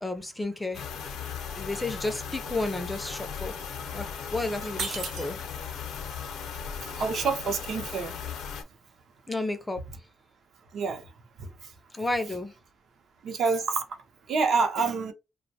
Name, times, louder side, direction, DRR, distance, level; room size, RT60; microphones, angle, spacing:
voice 1, 0.0-0.8 1.6-3.5 3.9-5.4 9.3-9.8 11.9-12.5, left 2 dB, 10° left, 0.4 m, -32 dB
sound 1, 0.6-0.8 1.1-1.8 2.1-4.3 4.6-9.6, right 5 dB, 85° right, 0.9 m, -41 dB
sound 2, 0.7-8.6, left 7 dB, 85° left, 0.5 m, -37 dB
voice 2, 7.0-8.1 10.7-11.0 13.2-13.8 14.3-15.1, right 4 dB, 60° right, 0.6 m, -27 dB
2.5 x 2.1 x 2.7 m
cardioid pair, 135°, 0 cm